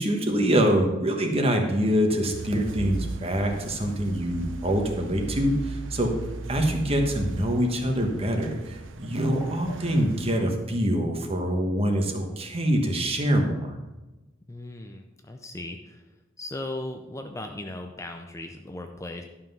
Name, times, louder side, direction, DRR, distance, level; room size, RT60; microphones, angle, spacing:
voice 1, 0.0-6.1 6.5-13.7, equal, 30° right, 3 dB, 1.3 m, -25 dB
sound 1, 2.3-10.4, right 3 dB, 70° right, 0.6 m, -37 dB
voice 2, 14.5-16.0 16.4-19.2, left 2 dB, 15° left, 4 dB, 0.5 m, -37 dB
11.5 x 5.7 x 5.5 m, 1.1 s
head